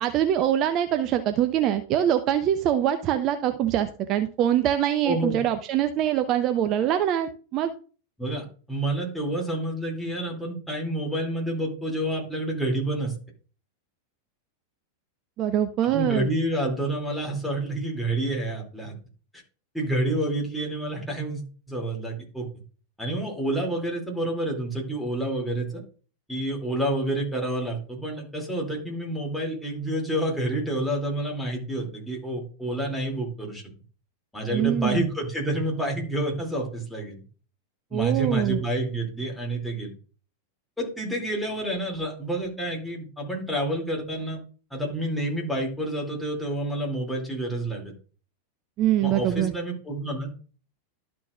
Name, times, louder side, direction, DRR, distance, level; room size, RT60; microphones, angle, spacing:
voice 1, 0.0-7.7 15.4-16.3 34.5-35.0 37.9-38.6 48.8-49.5, right 11 dB, 35° right, 9 dB, 0.5 m, -24 dB
voice 2, 5.0-5.4 8.2-13.2 15.9-18.9 19.7-22.5 23.0-25.8 26.3-33.6 34.3-37.2 37.9-40.0 40.8-44.4 44.7-47.9 49.0-50.4, right 1 dB, 5° left, -2 dB, 2.6 m, -29 dB
12.0 x 6.0 x 2.4 m, 0.39 s
figure-of-eight pair, 90°, 0 cm